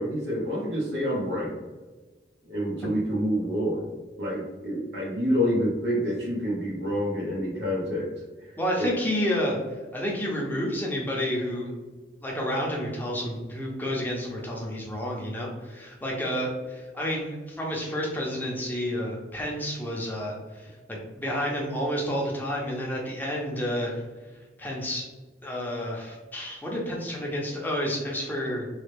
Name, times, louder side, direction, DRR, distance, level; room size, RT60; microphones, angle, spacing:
voice 1, 0.0-1.5 2.4-3.9 4.2-8.1 8.4-9.0, equal, 90° right, -4 dB, 1.1 m, -28 dB
voice 2, 8.6-9.6 9.9-11.7 12.2-23.9 24.6-25.1 25.4-28.7, equal, 10° left, -3 dB, 0.6 m, -30 dB
3.2 x 2.3 x 3.3 m, 1.3 s
head